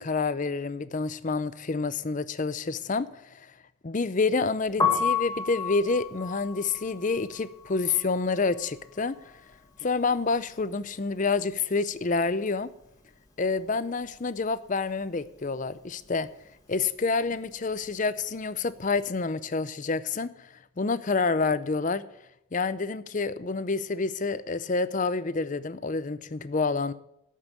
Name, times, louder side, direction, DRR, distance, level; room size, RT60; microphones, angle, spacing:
voice 1, 0.0-3.5 3.8-9.1 9.8-12.7 13.4-16.3 16.7-20.5 20.8-22.0 22.5-26.9, left 4 dB, 35° left, 0.5 m, -28 dB
Piano, 4.7-10.6 10.9-12.5 12.7-19.2, left 6 dB, 15° left, 1.7 m, -33 dB
13.0 x 5.6 x 8.4 m
head